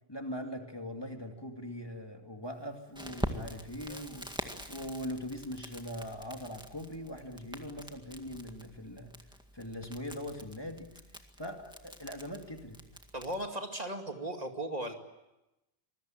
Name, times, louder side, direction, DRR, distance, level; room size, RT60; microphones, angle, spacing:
voice 1, 0.1-4.3 4.7-9.1 9.5-10.9 11.4-12.8, equal, 20° left, 3 dB, 2.4 m, -41 dB
Crackle, 2.9-13.5, equal, 5° right, 1.9 m, -44 dB
voice 2, 13.1-14.9, right 1 dB, 35° right, 4 dB, 2.5 m, -37 dB
26.5 x 21.0 x 9.0 m, 0.97 s
omnidirectional pair, 1.1 m